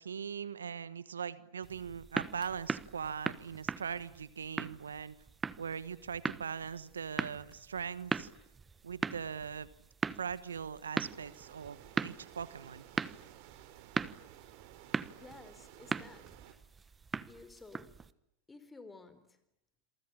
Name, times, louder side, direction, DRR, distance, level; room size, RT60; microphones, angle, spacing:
voice 1, 0.0-5.2 5.6-8.3 8.8-9.7 10.2-12.8, right 7 dB, 85° right, 1.2 m, -40 dB
sound 1, 1.6-18.1, right 5 dB, 15° right, 1.2 m, -40 dB
sound 2, 11.1-16.5, right 13 dB, 55° right, 3.2 m, -55 dB
voice 2, 15.2-16.4 17.2-18.0 18.5-19.4, left 3 dB, 10° left, 4.2 m, -53 dB
28.0 x 23.5 x 9.0 m
hypercardioid pair, 100°, 0 cm